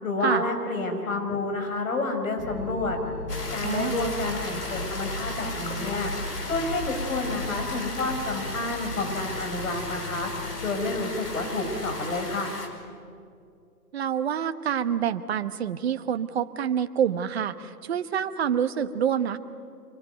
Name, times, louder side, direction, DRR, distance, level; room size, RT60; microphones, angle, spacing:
voice 1, 0.0-3.0 3.5-6.1 6.5-10.3 10.6-12.5, left 2 dB, 60° left, 4 dB, 5.4 m, -29 dB
sound 1, 2.4-12.4, left 2 dB, 20° left, 3.3 m, -37 dB
sound 2, 3.3-12.7, left 2 dB, 85° left, 5.2 m, -36 dB
voice 2, 3.6-4.0 13.9-19.4, right 8 dB, 40° right, 11 dB, 1.2 m, -27 dB
27.0 x 22.0 x 9.2 m, 2.4 s
figure-of-eight pair, 140°, 46 cm